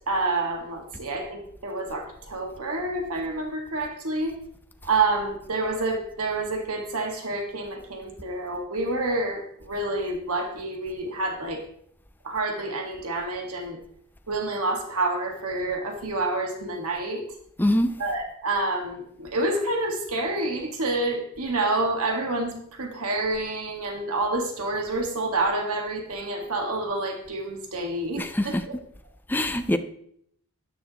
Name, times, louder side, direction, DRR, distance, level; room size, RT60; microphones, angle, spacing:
voice 1, 0.1-4.3 4.8-11.6 12.2-13.8 14.3-17.2 18.0-28.8, right 2 dB, 75° right, 1.8 m, -28 dB
voice 2, 17.6-17.9 28.2-28.6 29.3-29.8, left 1 dB, 10° left, 0.5 m, -23 dB
13.0 x 10.0 x 3.0 m
head